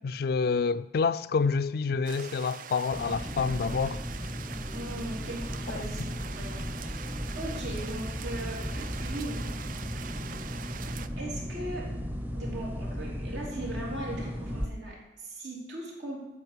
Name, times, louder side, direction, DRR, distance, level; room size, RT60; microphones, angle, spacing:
voice 1, 0.0-4.0 5.7-5.8, left 5 dB, 55° left, 0.3 m, -28 dB
sound 1, 2.0-11.1, right 7 dB, 45° right, 0.4 m, -43 dB
sound 2, 2.9-14.7, equal, 10° right, 0.7 m, -36 dB
voice 2, 4.7-9.5 11.2-11.9 12.3-16.2, right 1 dB, 80° right, 3.2 m, -39 dB
9.1 x 6.0 x 8.1 m
head